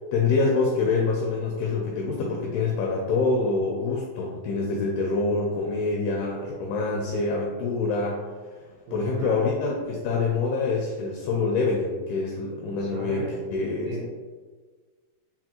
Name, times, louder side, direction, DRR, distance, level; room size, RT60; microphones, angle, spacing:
voice 1, 0.1-8.3 8.9-13.2 13.5-13.9, left 3 dB, 85° left, -1 dB, 2.2 m, -26 dB
voice 2, 8.6-9.4 12.8-13.5 13.8-14.1, right 3 dB, 80° right, -6 dB, 2.1 m, -36 dB
6.6 x 2.4 x 2.9 m, 1.4 s
omnidirectional pair, 5.0 m